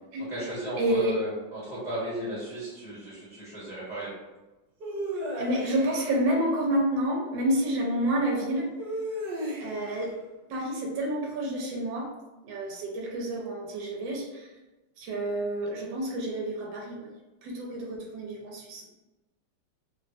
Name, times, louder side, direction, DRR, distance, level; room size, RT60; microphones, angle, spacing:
voice 1, 0.2-4.1, right 1 dB, 30° left, -10 dB, 0.7 m, -35 dB
voice 2, 0.8-1.2 5.3-8.7 9.6-10.2 10.5-12.1 12.4-14.5 15.0-17.1 17.4-18.8, right 1 dB, 80° right, -2 dB, 1.3 m, -29 dB
sound 1, 4.8-6.2 8.8-9.9, right 1 dB, 55° right, 1.3 m, -34 dB
3.2 x 2.0 x 2.6 m, 1.1 s
omnidirectional pair, 2.1 m